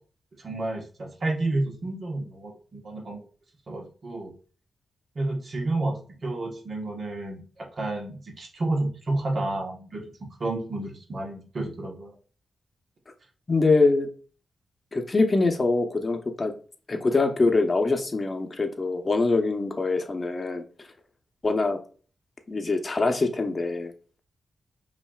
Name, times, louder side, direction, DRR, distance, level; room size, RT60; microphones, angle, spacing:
voice 1, 0.4-3.2 3.7-4.3 5.1-10.0 10.4-12.1, right 2 dB, 55° right, 1 dB, 1.1 m, -30 dB
voice 2, 13.5-14.1 14.9-16.5 16.9-20.6 21.4-21.8 22.5-23.9, left 3 dB, 40° left, 6 dB, 0.8 m, -24 dB
5.5 x 2.5 x 2.3 m, 0.39 s
supercardioid pair, 45°, 0 cm